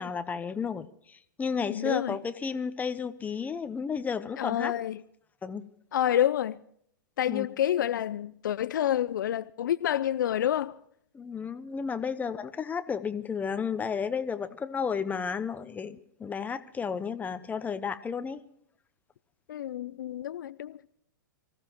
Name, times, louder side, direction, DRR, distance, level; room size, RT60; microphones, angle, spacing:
voice 1, 0.0-4.7 5.4-5.6 7.3-7.5 11.1-18.4, left 6 dB, 15° left, 1.0 m, -32 dB
voice 2, 1.7-2.2 4.4-5.0 5.9-6.6 7.2-10.8 19.5-20.8, left 11 dB, 70° left, 0.5 m, -28 dB
24.5 x 15.0 x 3.0 m
hypercardioid pair, 110°, 11 cm